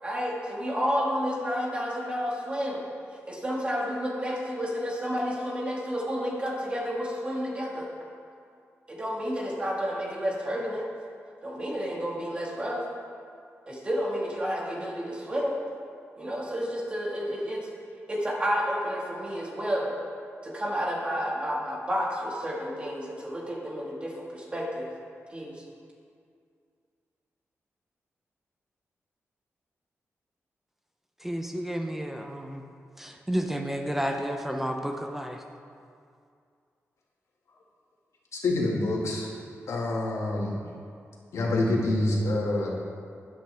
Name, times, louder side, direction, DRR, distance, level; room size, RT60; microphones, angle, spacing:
voice 1, 0.0-2.8 3.3-7.9 8.9-10.9 11.4-12.8 13.7-15.6 16.2-17.6 18.1-19.9 20.4-24.9 25.3-25.6, equal, 20° right, -3 dB, 1.7 m, -30 dB
voice 2, 31.2-32.6 33.0-35.4, equal, 5° right, 4 dB, 0.5 m, -31 dB
voice 3, 38.3-39.3 39.7-40.6 41.3-42.7, left 2 dB, 80° left, -2 dB, 1.9 m, -26 dB
11.5 x 10.5 x 3.4 m, 2.3 s
wide cardioid pair, 160°, 5 cm